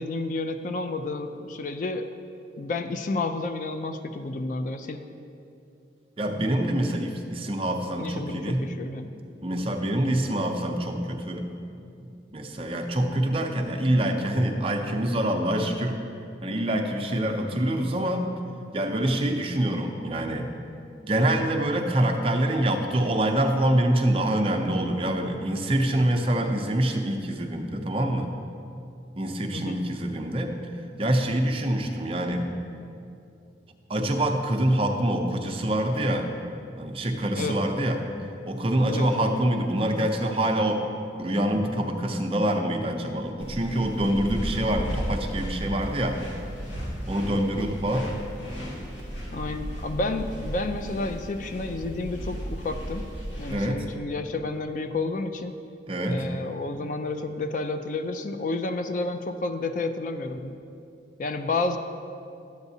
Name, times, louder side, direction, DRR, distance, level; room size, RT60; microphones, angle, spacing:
voice 1, 0.0-2.1 2.6-5.0 8.0-9.1 29.5-29.8 37.4-37.6 38.8-39.3 49.3-53.0 53.4-55.5 56.1-60.6 61.2-61.8, left 3 dB, 45° left, 8 dB, 0.3 m, -30 dB
voice 2, 6.2-8.6 9.4-11.4 12.0-16.0 16.4-18.2 18.7-20.5 21.0-28.3 29.2-30.5 31.0-32.5 33.9-36.2 36.8-38.0 38.5-40.8 41.2-46.2 47.1-48.1 53.5-53.8 55.9-56.2, right 1 dB, 30° right, 4 dB, 0.5 m, -25 dB
sound 1, 43.4-53.5, equal, 80° left, 2.2 m, -35 dB
11.5 x 8.0 x 2.7 m, 2.6 s
head